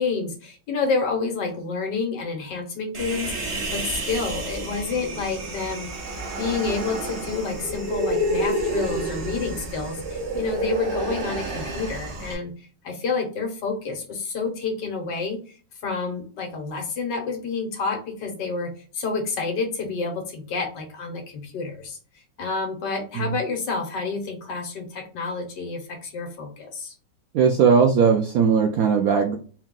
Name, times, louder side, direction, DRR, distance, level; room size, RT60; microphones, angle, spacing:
voice 1, 0.0-5.9 6.4-15.5 15.8-26.9, left 4 dB, 65° left, 2 dB, 1.6 m, -29 dB
Human voice, 2.9-12.3, right 1 dB, 45° right, 0.9 m, -29 dB
voice 2, 27.3-29.4, right 6 dB, 80° right, 4 dB, 0.8 m, -18 dB
4.4 x 2.3 x 3.7 m, 0.39 s
omnidirectional pair, 2.1 m